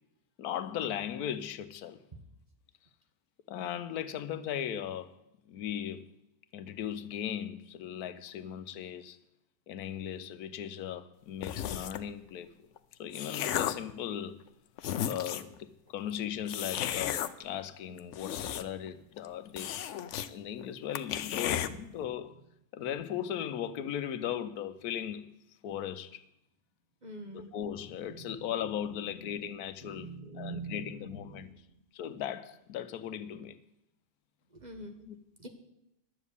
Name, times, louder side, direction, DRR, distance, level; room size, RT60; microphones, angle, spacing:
voice 1, 0.4-2.0 3.5-5.1 5.5-6.1 6.5-9.2 9.7-12.7 13.0-14.4 15.0-19.9 20.3-22.4 22.7-26.2 27.3-31.5 31.9-33.6 35.1-35.2, left 10 dB, 80° left, 1.2 m, -38 dB
sound 1, 11.4-12.1 12.8-13.9 14.5-14.6 14.8-15.6 16.5-17.3 18.0-18.9 19.2-19.3 19.6-20.3 20.6-20.7 21.0-21.7, left 10 dB, 65° left, 0.8 m, -34 dB
voice 2, 27.0-27.5 28.2-28.4 29.2-29.4 29.8-31.6 34.6-35.0 35.4-35.5, right 3 dB, 30° right, 1.3 m, -44 dB
11.0 x 7.2 x 8.2 m
omnidirectional pair, 1.6 m